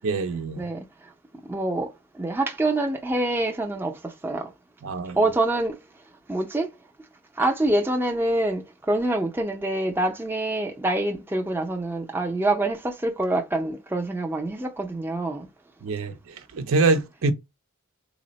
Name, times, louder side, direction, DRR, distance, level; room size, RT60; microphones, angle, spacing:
voice 1, 0.0-0.6 4.8-5.2 15.8-17.3, right 3 dB, 65° right, 0.5 m, -25 dB
voice 2, 1.5-4.5 5.1-5.8 6.3-6.7 7.4-15.5, right 2 dB, 10° right, 0.4 m, -26 dB
3.5 x 2.0 x 3.9 m
head